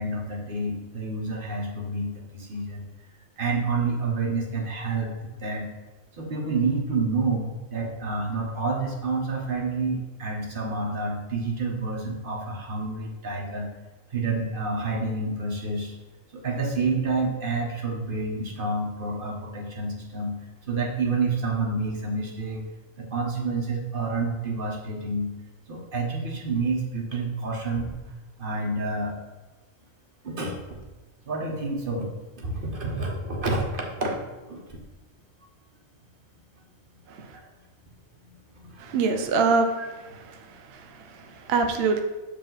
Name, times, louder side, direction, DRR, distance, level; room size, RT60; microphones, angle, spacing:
voice 1, 0.0-2.9 3.4-5.7 6.2-13.7 14.1-15.9 16.3-20.4 20.7-22.6 23.0-25.3 25.7-27.9 28.4-29.2 30.2-30.5 31.2-32.1 32.4-34.2 34.5-34.8 37.3-37.4 38.3-38.9, right 3 dB, 40° right, 0 dB, 1.3 m, -29 dB
voice 2, 38.8-39.8 40.1-42.0, right 4 dB, 55° right, 5 dB, 0.8 m, -25 dB
7.2 x 4.8 x 4.0 m, 1.2 s
omnidirectional pair, 1.4 m